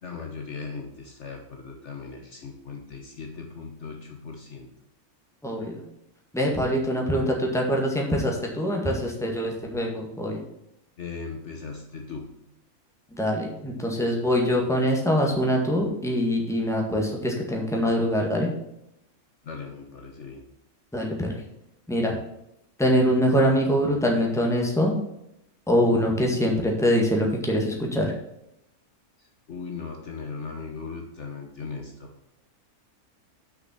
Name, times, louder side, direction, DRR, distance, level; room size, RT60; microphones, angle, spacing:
voice 1, 0.0-4.7 11.0-12.3 19.4-20.4 29.2-32.1, left 4 dB, 55° left, 2 dB, 1.3 m, -38 dB
voice 2, 5.4-5.8 6.3-10.4 13.1-18.5 20.9-21.4 21.9-22.2 22.8-25.0 25.7-28.1, equal, ahead, -1 dB, 1.7 m, -24 dB
6.5 x 5.8 x 7.3 m, 0.83 s
omnidirectional pair, 1.6 m